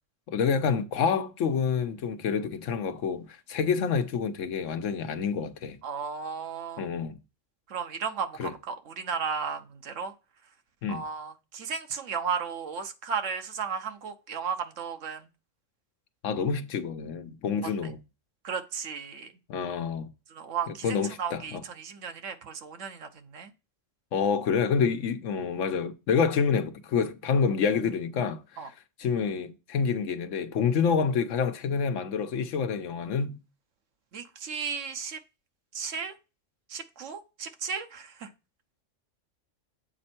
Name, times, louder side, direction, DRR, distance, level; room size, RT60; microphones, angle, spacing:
voice 1, 0.3-5.8 6.8-7.2 8.4-8.5 10.8-11.0 16.2-18.0 19.5-20.1 20.8-21.6 24.1-28.6 29.0-33.4, left 6 dB, 80° left, 1.1 m, -28 dB
voice 2, 5.8-6.9 7.7-10.1 10.9-15.3 18.4-19.3 20.3-23.5 28.6-28.7 34.1-35.2 35.7-36.1 36.7-38.3, right 6 dB, 85° right, 1.2 m, -34 dB
7.7 x 4.3 x 4.3 m
omnidirectional pair, 1.3 m